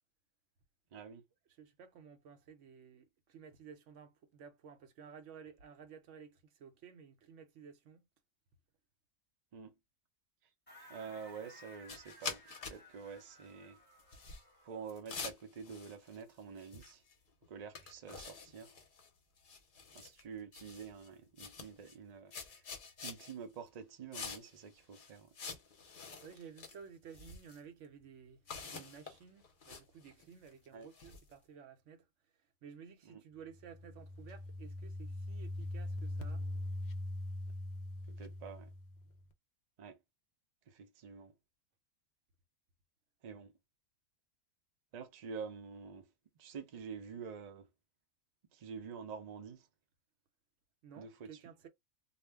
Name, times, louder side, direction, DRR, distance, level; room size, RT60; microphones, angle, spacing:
voice 1, 0.9-1.2 9.5-9.7 10.9-13.8 14.6-17.0 17.5-18.8 19.9-22.6 23.0-25.4 30.7-30.9 33.0-33.2 38.1-38.7 39.8-40.0 40.7-41.3 43.2-43.5 44.9-46.1 46.4-47.7 48.5-49.7 51.0-51.4, right 6 dB, 50° right, 0.5 m, -48 dB
voice 2, 1.6-8.0 26.2-32.1 32.6-36.5 50.8-51.7, right 7 dB, 70° right, 0.9 m, -54 dB
sound 1, 10.7-15.1, left 1 dB, 10° left, 1.1 m, -59 dB
sound 2, 11.9-12.8 13.1-13.2 14.0-14.4 14.9-16.3 16.6-17.1 17.4-17.5 17.7-19.1 19.4-20.2 20.5-21.1 21.4-22.0 22.3-23.3 24.1-24.6 24.9-26.8 27.1-27.6 28.5-31.3, left 5 dB, 50° left, 0.7 m, -47 dB
sound 3, 33.5-39.2, left 1 dB, 75° left, 0.4 m, -41 dB
2.4 x 2.1 x 3.3 m
omnidirectional pair, 1.4 m